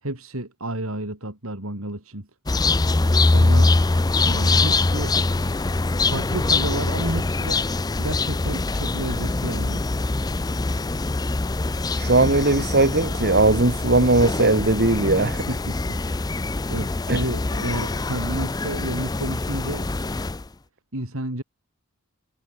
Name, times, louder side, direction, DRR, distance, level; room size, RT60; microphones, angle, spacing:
voice 1, 0.0-2.3 3.3-3.8 4.3-5.1 6.0-7.6 8.0-9.8 15.3-20.0 20.9-21.4, right 1 dB, 80° right, 5.1 m, -31 dB
sound 1, 2.5-20.5, left 2 dB, 20° left, 0.5 m, -23 dB
voice 2, 12.0-15.5 17.1-17.2, right 2 dB, 50° right, 2.7 m, -19 dB
head